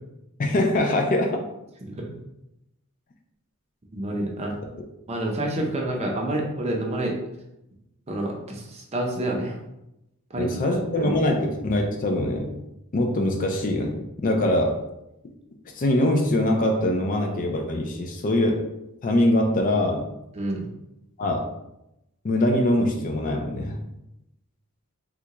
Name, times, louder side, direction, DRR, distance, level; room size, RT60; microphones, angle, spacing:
voice 1, 0.4-1.4 10.4-12.5 12.9-14.8 15.8-18.6 19.0-20.1 21.2-21.5 22.2-23.8, left 1 dB, 40° left, 3 dB, 0.4 m, -23 dB
voice 2, 3.9-4.6 5.1-7.2 8.1-9.6 10.3-11.1 20.3-20.7, right 1 dB, 30° right, 0 dB, 0.5 m, -28 dB
3.6 x 2.2 x 2.9 m, 0.87 s
head